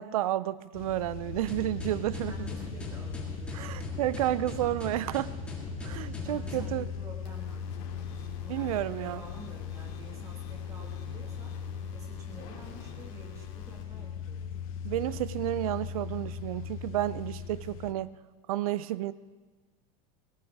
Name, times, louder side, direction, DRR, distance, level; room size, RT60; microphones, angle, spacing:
voice 1, 0.0-2.5 3.5-5.3 5.8-6.9 8.5-9.2 14.8-18.2 18.5-19.1, right 14 dB, 85° right, 17 dB, 0.5 m, -31 dB
sound 1, 0.7-17.9, left 8 dB, 80° left, 0.9 m, -39 dB
sound 2, 1.5-6.8, left 1 dB, 5° left, 2.1 m, -40 dB
voice 2, 2.3-3.8 6.2-7.7 8.4-11.6 11.9-14.5, right 3 dB, 20° right, 1 dB, 2.0 m, -49 dB
sound 3, 7.3-13.8, left 5 dB, 55° left, 2.7 m, -51 dB
19.0 x 17.0 x 3.6 m, 1.3 s
supercardioid pair, 175°, 18 cm